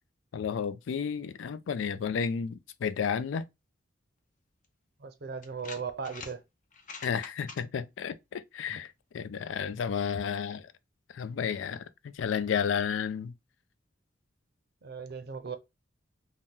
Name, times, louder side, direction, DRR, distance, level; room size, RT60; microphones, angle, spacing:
voice 1, 0.3-3.5 7.0-10.7 11.1-13.3, left 7 dB, 90° left, 0.4 m, -32 dB
sound 1, 4.6-4.7 5.4-6.3 6.7-7.6, left 4 dB, 45° left, 0.6 m, -44 dB
voice 2, 5.0-6.4 8.7-8.8 14.8-15.6, right 5 dB, 60° right, 0.6 m, -37 dB
2.8 x 2.1 x 3.5 m
head